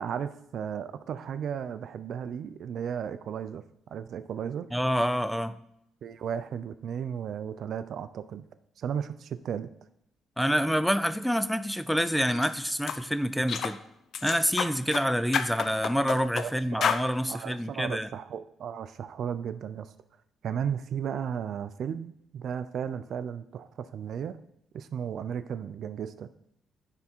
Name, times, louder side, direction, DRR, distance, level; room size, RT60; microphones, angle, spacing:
voice 1, 0.0-4.7 6.0-8.4 8.8-9.7 16.4-16.9 17.3-19.9 20.4-24.4 24.7-26.3, right 8 dB, 65° right, 13 dB, 0.4 m, -35 dB
voice 2, 4.7-5.6 10.4-13.8 14.2-18.1, equal, ahead, 12 dB, 0.4 m, -27 dB
sound 1, 12.3-12.5 12.9-13.0 13.5-13.8 14.1-15.0 15.3-16.5 16.8-17.1, left 7 dB, 65° left, 0.5 m, -29 dB
10.5 x 3.6 x 4.4 m, 0.76 s
cardioid pair, 90°, 0 cm